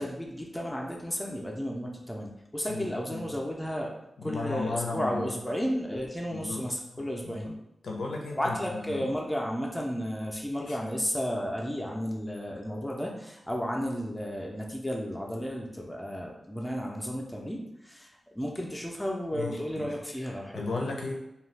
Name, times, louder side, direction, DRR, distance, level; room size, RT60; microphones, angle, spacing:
voice 1, 0.0-3.9 4.2-7.5 8.4-20.6, equal, 5° left, -1 dB, 0.4 m, -33 dB
voice 2, 2.7-3.3 4.2-5.3 6.3-6.6 6.9-7.5 7.8-9.1 10.5-10.8 19.3-19.9 20.5-21.1, left 3 dB, 90° left, 0 dB, 0.6 m, -35 dB
2.7 x 2.3 x 3.2 m, 0.89 s
wide cardioid pair, 105°, 0 cm